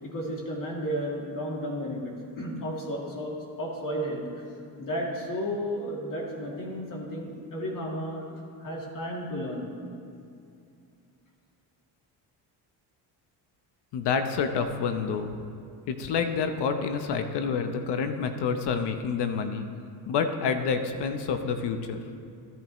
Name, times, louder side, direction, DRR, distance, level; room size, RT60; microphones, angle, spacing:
voice 1, 0.0-4.4 4.8-8.2 8.6-9.7, equal, 50° left, -3 dB, 2.6 m, -33 dB
voice 2, 13.9-15.4 15.9-19.7 20.1-22.0, left 5 dB, 70° left, 7 dB, 0.9 m, -28 dB
14.0 x 10.5 x 3.1 m, 2.5 s
cardioid pair, 95°, 43 cm